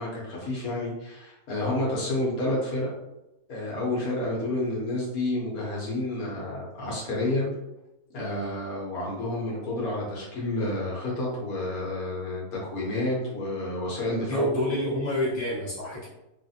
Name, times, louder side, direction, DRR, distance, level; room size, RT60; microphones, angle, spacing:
voice 1, 0.0-2.9 3.5-7.5 8.1-14.5, left 1 dB, 75° left, -4 dB, 1.3 m, -30 dB
voice 2, 14.2-16.1, equal, 20° left, -9 dB, 1.2 m, -28 dB
3.1 x 2.5 x 2.6 m, 0.94 s
omnidirectional pair, 1.6 m